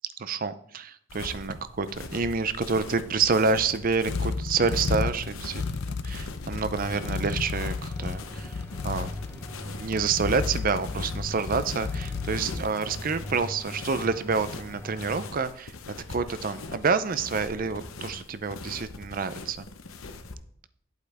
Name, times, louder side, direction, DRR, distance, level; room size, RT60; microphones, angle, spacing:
voice 1, 0.2-19.7, right 5 dB, 40° right, 13 dB, 0.5 m, -28 dB
sound 1, 1.1-20.3, left 3 dB, 80° left, 0.9 m, -42 dB
sound 2, 2.8-13.4, left 4 dB, 55° left, 0.5 m, -33 dB
sound 3, 6.7-15.3, left 1 dB, 10° left, 0.9 m, -42 dB
11.0 x 8.1 x 3.5 m, 0.65 s
head